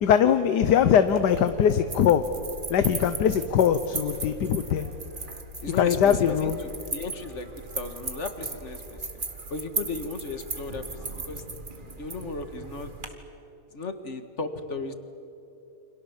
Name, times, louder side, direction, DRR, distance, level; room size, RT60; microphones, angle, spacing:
voice 1, 0.0-2.2 2.7-4.9 5.7-6.6, left 8 dB, 90° left, 10 dB, 1.5 m, -21 dB
sound 1, 1.0-13.1, right 3 dB, 30° right, 1.8 m, -37 dB
voice 2, 5.6-7.5 7.7-9.0 9.5-10.8 11.2-11.4 11.7-12.9 13.7-14.9, left 3 dB, 45° left, 8 dB, 2.0 m, -35 dB
29.0 x 26.0 x 7.3 m, 2.9 s
omnidirectional pair, 1.7 m